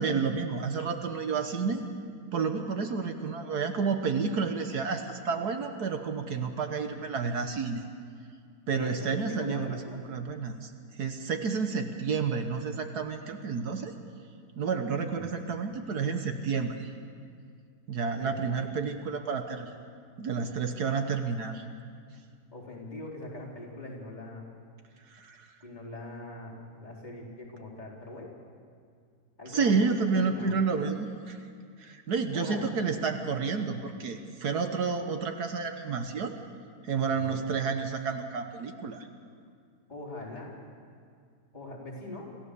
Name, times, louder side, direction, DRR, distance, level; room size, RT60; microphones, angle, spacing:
voice 1, 0.0-1.8 2.3-7.8 8.7-9.8 10.1-10.7 11.0-13.9 14.6-16.9 17.9-19.7 20.2-21.6 25.1-25.4 29.5-31.4 31.8-36.3 36.8-39.1, right 5 dB, 70° right, 6 dB, 1.6 m, -30 dB
voice 2, 8.7-10.0 15.2-15.4 18.1-18.4 22.5-24.5 25.6-26.6 26.8-28.3 29.4-29.8 30.1-30.6 32.3-32.6 37.1-37.4 39.9-40.6 41.5-42.3, left 2 dB, 25° left, -6 dB, 4.5 m, -42 dB
27.0 x 15.0 x 6.9 m, 2.2 s
omnidirectional pair, 1.8 m